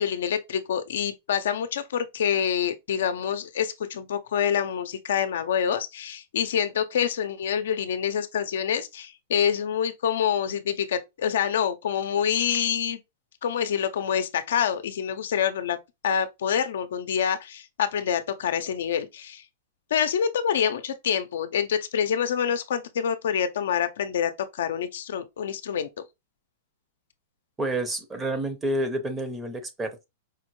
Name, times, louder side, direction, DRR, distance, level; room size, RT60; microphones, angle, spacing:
voice 1, 0.0-13.0 13.4-15.8 16.0-19.4 19.9-25.9, left 8 dB, 75° left, 0.5 m, -26 dB
voice 2, 27.6-30.1, right 1 dB, 15° right, 0.7 m, -29 dB
4.8 x 2.1 x 3.0 m
hypercardioid pair, 130°, 0 cm